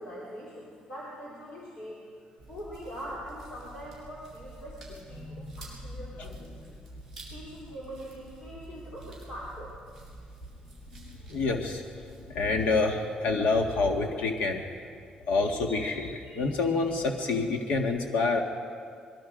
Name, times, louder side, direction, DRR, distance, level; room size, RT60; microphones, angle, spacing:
voice 1, 0.0-2.0 2.5-6.8 7.3-9.8, equal, 40° left, -5 dB, 3.9 m, -43 dB
sound 1, 2.4-12.3, right 1 dB, 5° left, 7.2 m, -49 dB
voice 2, 5.2-5.5 11.0-11.8 12.3-14.6 15.3-18.4, left 3 dB, 70° left, 3 dB, 1.8 m, -27 dB
24.5 x 22.5 x 5.2 m, 2.2 s
cardioid pair, 180°, 2 cm